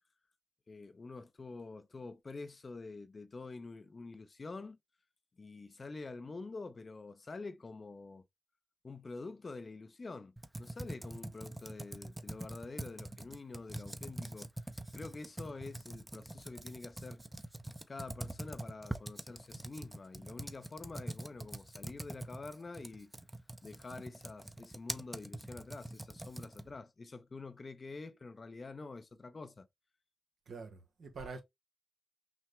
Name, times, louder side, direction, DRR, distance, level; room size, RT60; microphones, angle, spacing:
voice 1, 0.7-4.8 5.4-8.2 8.8-17.2 17.9-23.1 23.6-29.7, left 3 dB, 50° left, 0.7 m, -47 dB
Computer keyboard, 10.4-26.8, right 1 dB, 20° right, 0.7 m, -45 dB
voice 2, 30.5-31.4, right 4 dB, 75° right, 1.2 m, -45 dB
6.0 x 2.1 x 3.3 m
supercardioid pair, 40°, 0 cm